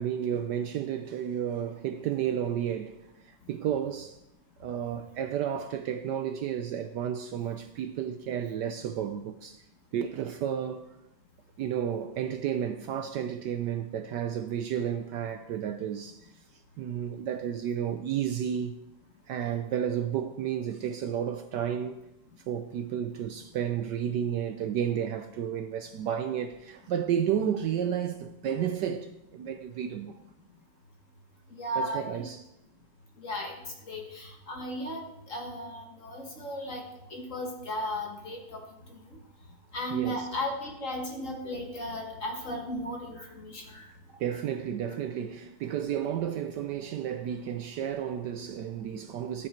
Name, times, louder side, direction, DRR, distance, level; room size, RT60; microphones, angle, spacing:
voice 1, 0.0-4.2 4.6-9.6 9.9-10.9 11.6-16.3 16.8-18.8 19.3-22.0 22.5-30.2 31.8-32.4 39.9-40.3 44.2-49.5, right 9 dB, 80° right, 0.9 m, -32 dB
voice 2, 31.5-32.2 33.2-36.8 37.1-38.6 38.9-39.2 39.7-43.9, equal, 40° left, 1.7 m, -35 dB
12.0 x 8.4 x 4.4 m
omnidirectional pair, 2.4 m